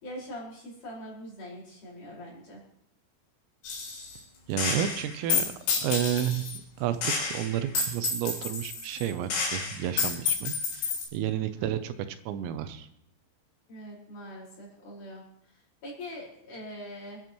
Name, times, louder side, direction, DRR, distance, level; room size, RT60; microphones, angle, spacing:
voice 1, 0.0-2.6 11.4-11.7 13.7-17.2, equal, 40° left, -5 dB, 6.2 m, -43 dB
Gunshot gunfire, 3.6-4.2 4.6-6.6 7.0-11.1, left 5 dB, 60° left, 5.9 m, -30 dB
voice 2, 4.5-5.5 5.8-6.5 6.8-11.9 12.3-12.9, right 10 dB, 85° right, 10 dB, 3.4 m, -31 dB
27.5 x 11.0 x 3.1 m, 0.69 s
omnidirectional pair, 6.0 m